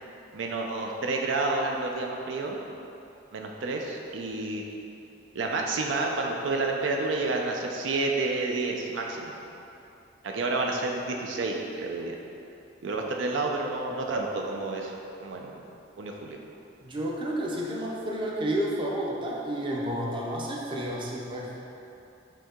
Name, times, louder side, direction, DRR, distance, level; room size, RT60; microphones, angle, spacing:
voice 1, 0.3-2.6 3.3-4.6 5.3-9.3 10.2-12.2 12.8-15.5 16.0-16.4, right 3 dB, 85° right, 1 dB, 0.5 m, -30 dB
voice 2, 16.8-21.6, right 1 dB, 25° right, -3 dB, 0.5 m, -31 dB
5.2 x 2.8 x 3.6 m, 2.8 s
head